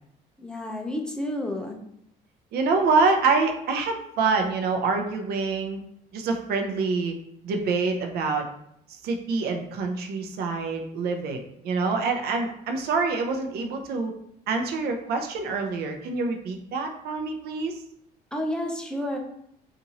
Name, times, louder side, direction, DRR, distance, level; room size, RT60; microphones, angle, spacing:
voice 1, 0.4-1.8 18.3-19.2, left 1 dB, 5° left, 1 dB, 0.5 m, -30 dB
voice 2, 2.5-5.8 6.1-7.1 7.4-8.4 9.0-14.1 14.5-17.8, right 4 dB, 70° right, 4 dB, 0.6 m, -26 dB
4.0 x 2.5 x 2.9 m, 0.74 s
cardioid pair, 110°, 17 cm